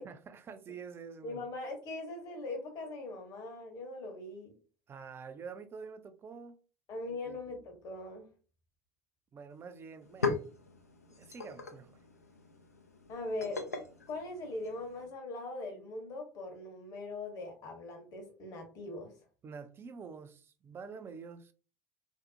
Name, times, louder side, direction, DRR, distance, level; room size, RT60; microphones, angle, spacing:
voice 1, 0.0-1.4 4.9-6.6 7.1-7.4 9.3-10.4 11.1-12.0 19.4-21.5, right 5 dB, 30° right, 0.4 m, -47 dB
voice 2, 1.2-4.5 6.9-8.2 13.1-13.7 14.1-19.1, left 2 dB, 50° left, 0.9 m, -41 dB
sound 1, 9.5-9.6 9.9-15.1, left 4 dB, 90° left, 0.4 m, -39 dB
2.6 x 2.0 x 2.6 m
figure-of-eight pair, 70°, 8 cm